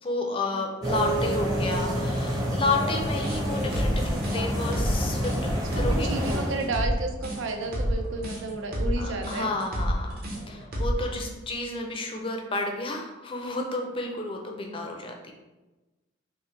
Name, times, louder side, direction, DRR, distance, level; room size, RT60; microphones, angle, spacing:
voice 1, 0.0-6.1 9.0-10.2 10.5-15.3, left 2 dB, 25° left, 2 dB, 0.5 m, -31 dB
sound 1, 0.8-6.7, equal, 20° right, 0.7 m, -28 dB
sound 2, 3.2-11.1, equal, 50° right, 0.9 m, -29 dB
voice 2, 5.7-9.5 11.2-11.3 14.6-14.9, right 2 dB, 85° right, 4 dB, 0.6 m, -32 dB
5.5 x 2.1 x 3.2 m, 1.1 s
head